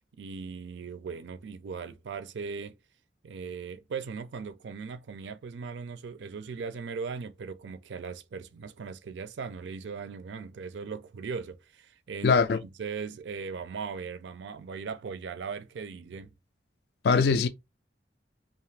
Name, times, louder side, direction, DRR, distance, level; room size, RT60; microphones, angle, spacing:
voice 1, 0.2-2.8 3.2-16.3, right 5 dB, 85° right, 0.4 m, -39 dB
voice 2, 12.2-12.6 17.0-17.5, left 5 dB, 65° left, 0.3 m, -21 dB
2.5 x 2.4 x 3.2 m
head